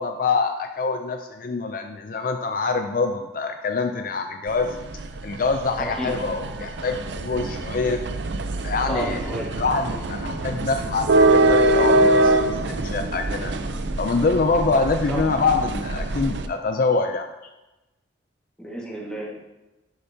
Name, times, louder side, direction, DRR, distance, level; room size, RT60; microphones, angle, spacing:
voice 1, 0.0-4.7 5.2-8.0 8.6-9.2 9.6-13.5 14.0-17.5, left 4 dB, 45° left, 5 dB, 0.4 m, -25 dB
sound 1, 4.5-16.5, right 1 dB, 70° right, 0.5 m, -23 dB
voice 2, 5.8-6.1 8.9-9.5 15.1-15.2 18.6-19.4, right 1 dB, 5° left, -4 dB, 1.6 m, -31 dB
11.5 x 6.7 x 2.7 m, 1.0 s
head